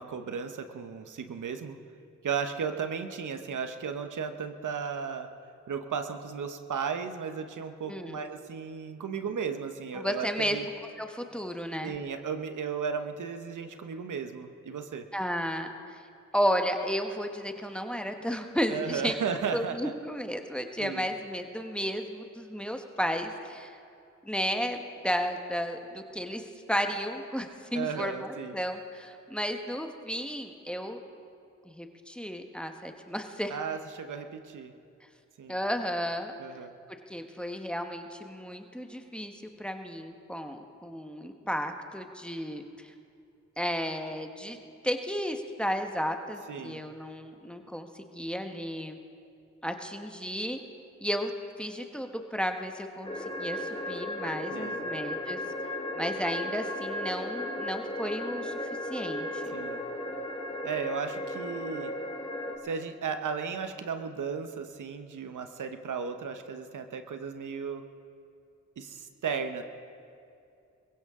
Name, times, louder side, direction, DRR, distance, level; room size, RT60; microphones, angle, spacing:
voice 1, 0.0-1.8 2.2-5.3 5.7-10.7 11.8-15.0 18.7-19.9 20.8-21.1 27.7-28.5 33.5-34.7 35.4-35.6 36.4-36.7 46.5-46.9 54.5-54.9 59.5-59.8 60.6-61.9 62.6-67.8 68.8-69.6, right 6 dB, 80° right, 7 dB, 1.0 m, -35 dB
voice 2, 7.9-8.2 9.9-10.6 11.0-11.9 15.1-16.0 16.3-19.1 19.5-23.8 24.2-24.8 25.0-31.0 31.6-33.5 35.5-36.3 37.1-39.3 39.6-42.9 43.6-44.6 44.8-49.0 49.6-50.6 51.0-51.3 51.6-55.4 56.0-59.6, equal, 5° left, 5 dB, 1.2 m, -33 dB
sound 1, 53.0-62.6, left 1 dB, 20° left, 2.2 m, -35 dB
22.0 x 16.0 x 3.7 m, 2.5 s
cardioid pair, 60°, 30 cm